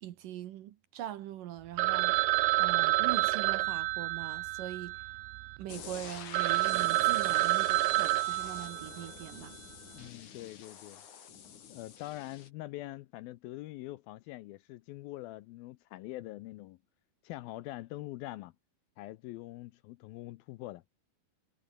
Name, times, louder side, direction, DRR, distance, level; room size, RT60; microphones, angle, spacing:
voice 1, 0.0-2.2 2.6-5.0 5.6-9.6, right 12 dB, 70° right, 2.4 m, -42 dB
Telephone, 1.8-5.6 6.0-6.1 6.3-9.2, right 20 dB, 85° right, 2.8 m, -29 dB
sound 1, 5.7-12.5, left 8 dB, 50° left, 3.6 m, -47 dB
voice 2, 9.9-11.0 11.7-16.8 17.2-18.5 19.0-20.8, left 17 dB, 80° left, 2.3 m, -44 dB
omnidirectional pair, 4.7 m